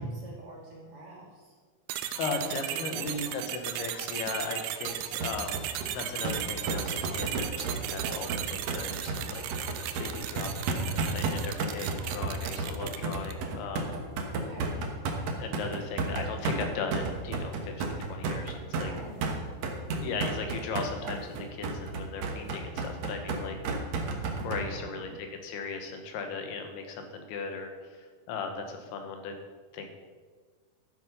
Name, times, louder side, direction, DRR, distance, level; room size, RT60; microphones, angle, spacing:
voice 1, 0.0-1.5 2.2-3.4 14.5-14.8 18.7-19.2 24.6-25.1, right 1 dB, 40° right, -3 dB, 3.6 m, -47 dB
sound 1, 1.9-13.5, right 11 dB, 85° right, 2.5 m, -36 dB
voice 2, 2.2-5.7 5.9-9.4 9.8-10.5 10.7-14.0 15.4-18.9 19.7-23.6 23.9-29.3 29.7-29.9, left 4 dB, 90° left, 4 dB, 3.3 m, -37 dB
sound 2, 5.2-24.6, right 3 dB, 60° right, 1.9 m, -32 dB
12.5 x 7.8 x 5.4 m, 1.5 s
omnidirectional pair, 4.4 m